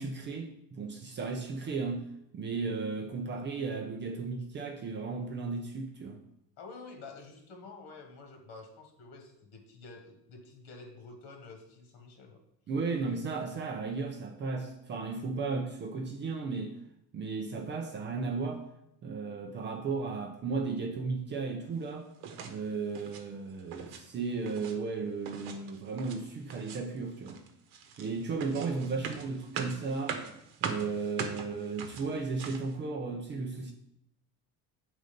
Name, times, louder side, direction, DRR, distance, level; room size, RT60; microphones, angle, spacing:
voice 1, 0.0-2.1 2.3-6.2 12.7-16.7 17.1-18.6 19.0-22.1 22.4-27.4 28.0-30.2 30.6-33.7, right 4 dB, 30° right, 0.5 m, -35 dB
voice 2, 6.6-12.4, left 3 dB, 90° left, 1.4 m, -49 dB
sound 1, 22.2-22.6 22.9-23.3 23.6-24.0 24.3-24.8 25.3-26.2 26.5-27.0 27.3-32.7, right 6 dB, 80° right, 1.0 m, -41 dB
7.9 x 3.9 x 5.1 m
cardioid pair, 170°, 36 cm